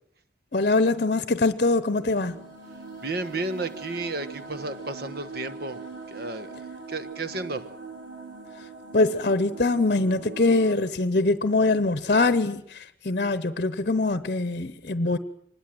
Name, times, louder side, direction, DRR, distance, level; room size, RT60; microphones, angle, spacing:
voice 1, 0.5-2.4 8.9-15.2, left 3 dB, 45° left, 0.9 m, -23 dB
sound 1, 1.9-10.8, right 4 dB, 80° right, 4.7 m, -41 dB
voice 2, 3.0-5.8 6.1-6.5 6.9-7.7, right 2 dB, 55° right, 1.3 m, -32 dB
24.5 x 20.5 x 7.8 m
head